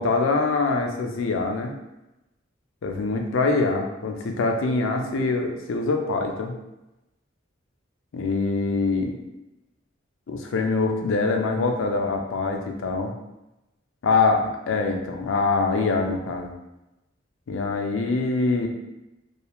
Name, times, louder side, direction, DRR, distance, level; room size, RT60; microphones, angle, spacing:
voice 1, 0.0-1.7 2.8-6.5 8.1-9.2 10.3-13.1 14.0-16.5 17.5-18.7, left 3 dB, 80° left, 3 dB, 0.4 m, -24 dB
2.4 x 2.3 x 2.9 m, 0.95 s
head